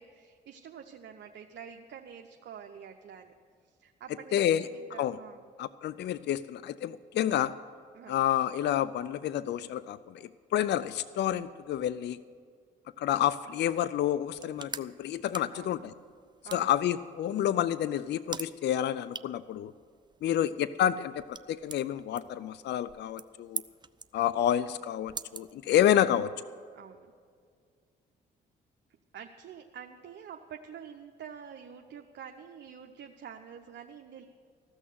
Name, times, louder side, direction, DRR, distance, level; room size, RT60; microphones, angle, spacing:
voice 1, 0.0-3.3 3.8-5.5 7.9-8.2 15.5-15.8 16.4-16.7 20.3-20.6 26.7-27.1 29.1-34.2, right 8 dB, 60° right, 3 dB, 0.8 m, -47 dB
voice 2, 4.3-4.6 5.0-5.2 5.6-7.5 8.1-10.0 10.5-12.2 13.0-15.9 16.5-19.7 20.2-21.1 21.5-23.6 24.1-26.3, left 11 dB, 55° left, 16 dB, 0.4 m, -29 dB
sound 1, 14.1-26.2, right 5 dB, 20° right, 0.5 m, -46 dB
15.0 x 6.3 x 9.3 m, 2.1 s
supercardioid pair, 55°, 21 cm